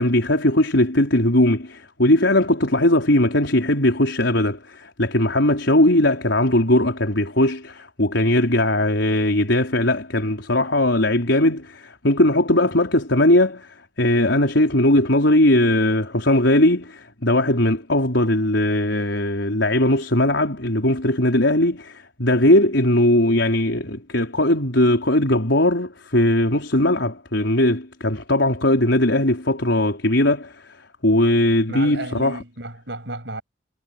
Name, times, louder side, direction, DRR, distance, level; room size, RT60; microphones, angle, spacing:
voice 1, 0.0-30.6 31.0-32.4, left 1 dB, 75° left, 4.8 m, -19 dB
voice 2, 31.7-33.4, right 2 dB, 70° right, 7.4 m, -33 dB
head